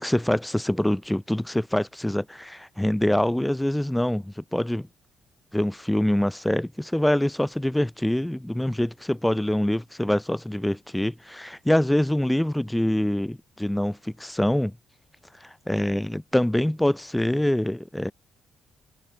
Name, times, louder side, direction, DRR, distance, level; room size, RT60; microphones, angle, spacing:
voice 1, 0.0-4.9 5.5-14.7 15.4-18.1, left 1 dB, 5° left, 0.4 m, -25 dB
cardioid pair, 90°, 0 cm